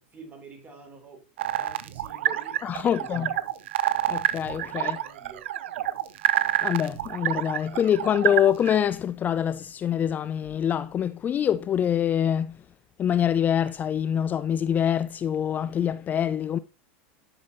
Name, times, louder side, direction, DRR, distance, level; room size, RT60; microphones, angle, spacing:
voice 1, 0.0-3.5 4.8-5.5, right 4 dB, 25° right, 3.1 m, -47 dB
sound 1, 1.4-8.8, right 12 dB, 80° right, 0.6 m, -28 dB
voice 2, 2.6-3.3 4.1-5.0 6.6-12.6 13.0-16.6, left 9 dB, 30° left, 0.4 m, -25 dB
10.5 x 6.1 x 2.8 m
supercardioid pair, 115°, 6 cm